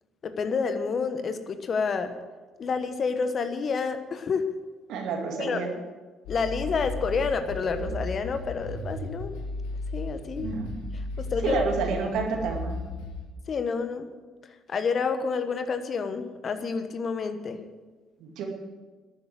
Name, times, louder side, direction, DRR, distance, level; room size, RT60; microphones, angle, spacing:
voice 1, 0.2-2.1 2.6-4.5 5.4-5.6 6.3-9.3 9.9-10.5 11.2-11.6 13.5-14.1 14.7-17.6, left 5 dB, 45° left, 9 dB, 1.3 m, -29 dB
voice 2, 4.9-5.7 10.4-10.8 11.4-12.8 18.2-18.5, right 5 dB, 65° right, 2 dB, 2.3 m, -29 dB
sound 1, 6.2-13.3, left 2 dB, 75° left, 2.0 m, -35 dB
12.0 x 9.3 x 7.8 m, 1.3 s
hypercardioid pair, 50°, 0 cm